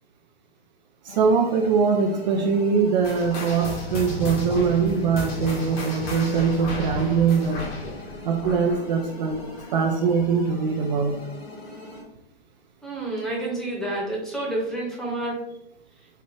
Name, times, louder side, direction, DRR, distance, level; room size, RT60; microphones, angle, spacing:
voice 1, 1.0-7.7 8.2-9.4 9.7-11.2, right 5 dB, 45° right, 2 dB, 0.5 m, -22 dB
sound 1, 1.1-12.0, left 1 dB, 80° left, 1.1 m, -41 dB
sound 2, 3.0-9.9 10.2-10.5 11.1-11.2 12.0-12.1, left 1 dB, 45° left, 1.3 m, -34 dB
voice 2, 12.8-15.4, right 2 dB, ahead, -4 dB, 1.0 m, -29 dB
4.3 x 2.4 x 3.1 m, 0.85 s
figure-of-eight pair, 105°, 31 cm